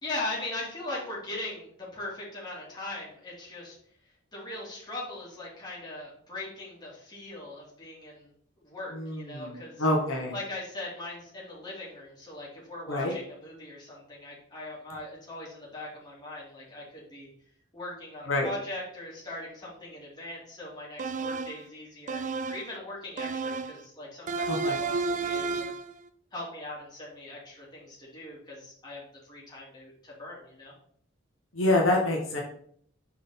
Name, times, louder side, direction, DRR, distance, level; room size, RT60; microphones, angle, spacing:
voice 1, 0.0-3.8 4.3-8.3 8.6-9.9 10.3-17.3 17.7-25.7 26.3-30.7, left 2 dB, 20° left, -6 dB, 2.6 m, -40 dB
voice 2, 8.9-10.3 12.9-13.1 18.3-18.5 24.5-24.8 31.5-32.4, left 1 dB, 75° left, -1 dB, 1.3 m, -26 dB
sound 1, 21.0-21.6 22.1-22.7 23.2-23.8 24.3-25.9, right 4 dB, 40° right, 0.3 m, -31 dB
5.6 x 4.8 x 3.8 m, 0.62 s
head